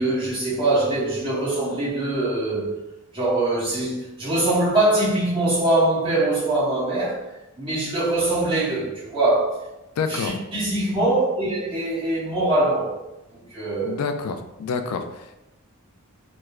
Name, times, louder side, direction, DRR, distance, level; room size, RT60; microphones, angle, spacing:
voice 1, 0.0-2.7 3.1-7.2 7.6-9.6 10.1-12.9 13.3-14.0, right 2 dB, 25° right, 1.5 m, -23 dB
voice 2, 10.0-10.3 13.8-15.4, left 5 dB, 85° left, 0.3 m, -28 dB
3.1 x 2.2 x 3.5 m
head